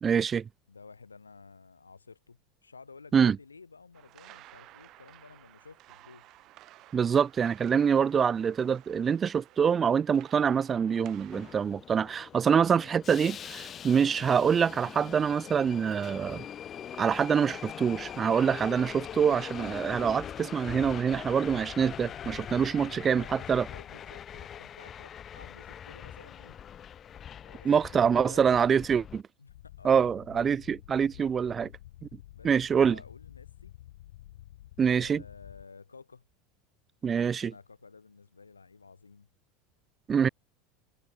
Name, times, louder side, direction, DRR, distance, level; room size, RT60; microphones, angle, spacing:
voice 1, 0.0-0.5 3.1-3.4 6.9-16.4 17.0-23.7 27.6-29.2 29.8-31.7 32.0-32.1 32.4-33.0 34.8-35.2 37.0-37.5 40.1-40.3, right 7 dB, 30° right, 0.4 m, -25 dB
voice 2, 0.7-6.4 22.6-26.6 27.4-28.7 29.4-30.1 32.3-33.7 34.8-36.3 37.3-39.3, left 4 dB, 90° left, 2.7 m, -52 dB
sound 1, 3.9-11.6, right 16 dB, 50° right, 5.6 m, -54 dB
Subway metro underground, 11.3-29.2, left 9 dB, 35° left, 0.5 m, -42 dB
sound 2, 29.5-35.6, left 14 dB, 70° left, 1.9 m, -50 dB
hypercardioid pair, 80°, 0 cm